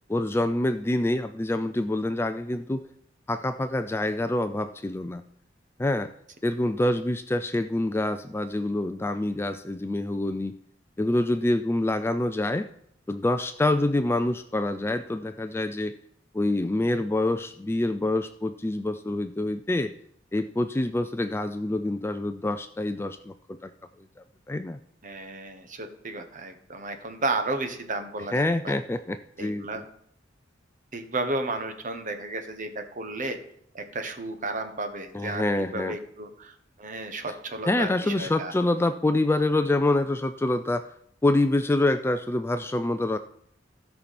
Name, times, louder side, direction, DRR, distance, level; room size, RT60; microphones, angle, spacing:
voice 1, 0.1-2.8 3.3-5.2 5.8-6.1 6.4-10.6 11.0-12.7 13.1-15.9 16.3-19.9 20.3-23.7 24.5-24.8 28.3-29.7 35.1-36.0 37.7-40.9 41.2-43.2, left 1 dB, 10° left, 10 dB, 0.3 m, -26 dB
voice 2, 25.0-28.7 29.4-29.8 30.9-33.4 33.7-38.5, right 2 dB, 40° right, 7 dB, 1.3 m, -33 dB
16.0 x 5.8 x 4.2 m, 0.69 s
head